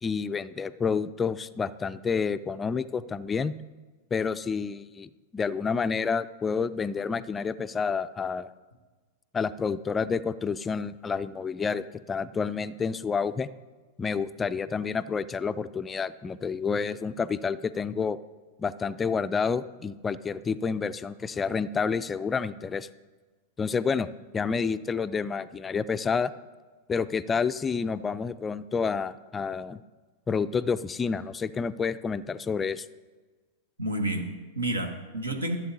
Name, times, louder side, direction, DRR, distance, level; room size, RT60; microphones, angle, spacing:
voice 1, 0.0-3.5 4.1-8.5 9.3-13.5 14.0-18.2 18.6-22.9 23.6-24.1 24.3-26.3 26.9-29.8 30.3-32.9, left 5 dB, 20° left, 13 dB, 0.3 m, -29 dB
voice 2, 33.8-35.6, right 1 dB, 85° right, 6 dB, 1.2 m, -30 dB
14.5 x 7.6 x 2.7 m, 1.3 s
figure-of-eight pair, 95°, 0 cm